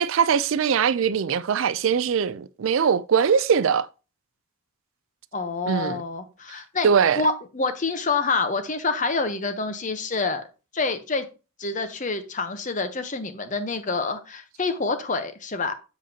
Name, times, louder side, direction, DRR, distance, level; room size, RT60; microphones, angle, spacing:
voice 1, 0.0-3.9 5.7-6.0 6.8-7.2, right 7 dB, 70° right, 0.4 m, -21 dB
voice 2, 5.3-6.9 7.2-10.5 10.7-11.3 11.6-15.7, left 3 dB, 35° left, 0.9 m, -27 dB
7.3 x 7.1 x 2.8 m
head